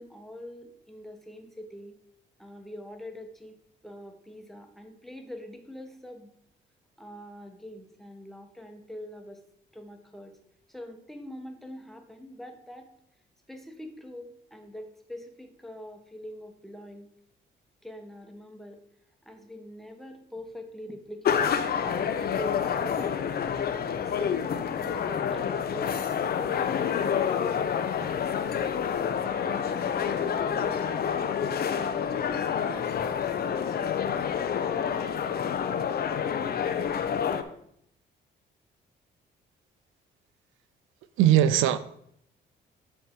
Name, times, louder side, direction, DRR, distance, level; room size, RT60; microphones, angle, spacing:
voice 1, 0.0-1.9 2.4-3.6 3.8-6.3 7.0-9.4 9.7-10.3 10.7-12.9 13.5-17.1 17.8-18.8 19.2-21.5 21.8-23.4 23.9-28.5 29.0-31.0, left 1 dB, ahead, 4 dB, 1.1 m, -44 dB
sound 1, 21.3-37.4, left 7 dB, 50° left, 0.6 m, -28 dB
voice 2, 41.2-41.8, right 12 dB, 90° right, 14 dB, 0.4 m, -19 dB
9.3 x 3.6 x 4.4 m, 0.72 s
cardioid pair, 90°, 20 cm